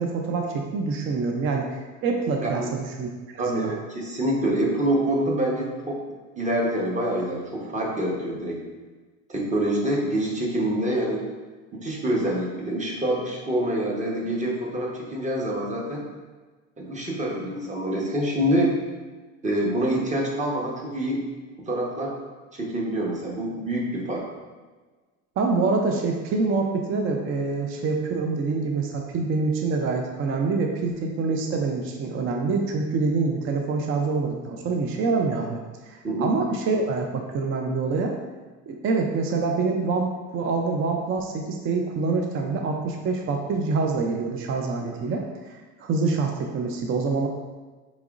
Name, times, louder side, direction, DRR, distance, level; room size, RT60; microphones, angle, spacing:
voice 1, 0.0-3.1 3.3-3.7 25.4-38.1 38.7-45.2 45.5-47.3, right 4 dB, 35° right, 2 dB, 0.4 m, -26 dB
voice 2, 3.4-6.0 6.4-8.6 9.3-11.3 11.7-16.1 16.8-18.7 19.4-21.2 21.6-22.1 22.5-24.3 36.0-36.3, right 1 dB, 20° right, -2 dB, 0.9 m, -26 dB
4.7 x 3.0 x 2.4 m, 1.3 s
supercardioid pair, 90°, 40 cm